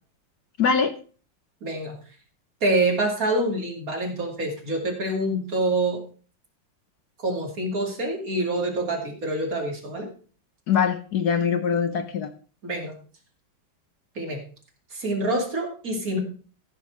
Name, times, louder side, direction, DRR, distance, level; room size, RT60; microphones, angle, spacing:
voice 1, 0.6-0.9 10.7-12.3, left 6 dB, 65° left, 8 dB, 1.2 m, -23 dB
voice 2, 1.6-2.0 2.6-6.0 7.2-10.1 12.6-13.0 14.2-14.4 14.9-16.2, right 2 dB, 45° right, 1 dB, 2.8 m, -26 dB
14.0 x 6.3 x 4.7 m, 0.40 s
omnidirectional pair, 2.1 m